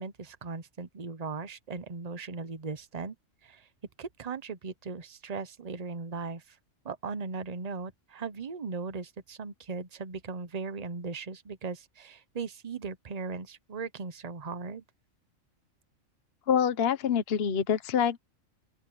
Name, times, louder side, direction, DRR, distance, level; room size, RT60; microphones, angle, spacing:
voice 1, 0.0-3.1 3.4-3.7 4.0-6.6 6.8-14.8, right 4 dB, 30° right, 1.0 m, -38 dB
voice 2, 16.5-18.2, left 8 dB, 50° left, 1.1 m, -26 dB
open air
omnidirectional pair, 1.4 m